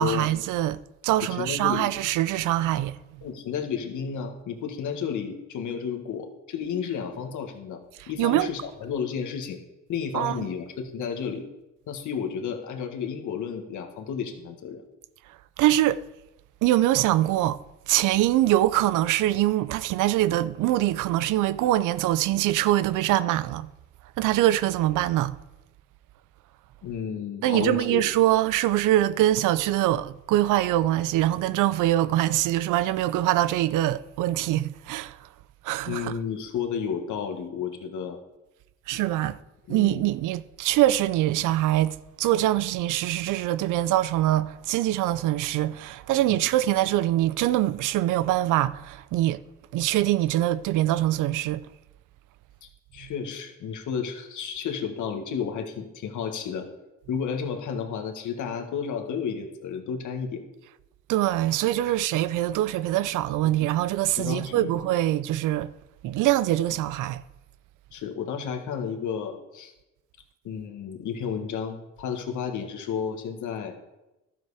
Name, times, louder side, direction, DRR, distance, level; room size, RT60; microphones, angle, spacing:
voice 1, 0.0-3.2 8.0-8.5 10.1-10.5 15.6-16.0 16.6-23.7 24.2-25.4 27.4-35.2 35.6-36.2 38.9-39.4 39.7-49.4 49.7-51.7 61.1-65.7 66.0-67.2, right 14 dB, 90° right, 0.5 m, -24 dB
voice 2, 1.2-1.9 3.2-9.6 9.9-11.5 11.9-14.8 26.8-28.0 35.9-38.2 39.7-40.1 46.3-46.4 52.9-56.7 57.1-60.4 64.2-64.8 67.9-69.7 70.4-73.7, left 7 dB, 75° left, 1.6 m, -32 dB
12.0 x 7.8 x 4.9 m
cardioid pair, 90°, 30 cm